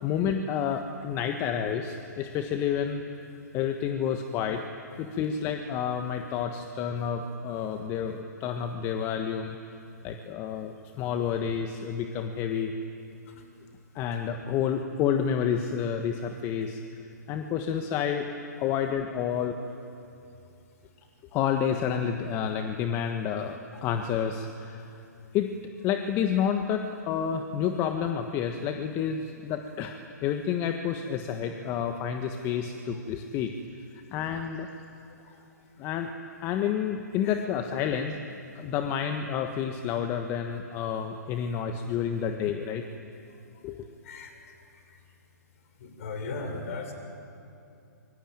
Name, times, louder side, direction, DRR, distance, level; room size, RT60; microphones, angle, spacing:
voice 1, 0.0-3.0 3.5-4.6 5.0-9.6 10.0-12.7 13.9-16.8 17.3-18.3 18.6-19.5 21.3-25.0 25.3-25.5 25.8-33.5 34.1-34.7 35.8-36.1 36.4-38.2 38.5-42.8 43.6-43.8, left 8 dB, 25° left, 6 dB, 1.5 m, -29 dB
voice 2, 44.0-44.4 44.7-45.0 45.8-46.9, left 3 dB, 50° left, 5 dB, 6.1 m, -40 dB
26.0 x 24.0 x 9.0 m, 2.7 s
hypercardioid pair, 130°, 10 cm